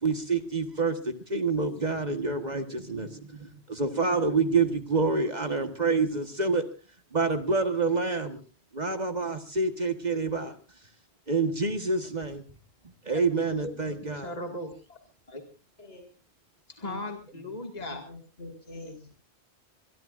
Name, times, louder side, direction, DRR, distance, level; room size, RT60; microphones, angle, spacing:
voice 1, 0.0-6.6 7.1-8.4 8.7-10.5 11.3-12.4 13.0-14.3, right 4 dB, 40° right, 8 dB, 1.6 m, -27 dB
voice 2, 14.1-15.0 15.3-15.4 16.7-18.0, left 1 dB, 35° left, 3 dB, 2.2 m, -38 dB
voice 3, 17.7-19.1, left 2 dB, 75° left, 4 dB, 7.6 m, -44 dB
24.0 x 22.0 x 2.6 m, 0.35 s
omnidirectional pair, 1.2 m